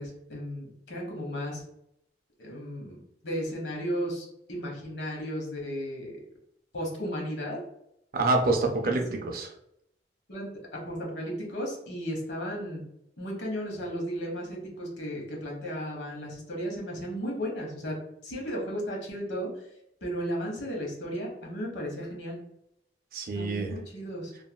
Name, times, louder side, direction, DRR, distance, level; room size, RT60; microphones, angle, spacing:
voice 1, 0.0-1.6 2.4-3.0 3.2-6.2 6.7-7.6 8.8-8.9 10.3-10.5 10.8-12.8 13.2-18.0 18.2-19.5 20.0-22.4 23.3-24.3, equal, 90° left, -1 dB, 1.0 m, -34 dB
voice 2, 8.1-9.5 23.1-23.8, right 2 dB, 55° right, 2 dB, 0.5 m, -27 dB
3.0 x 2.6 x 2.2 m, 0.77 s
head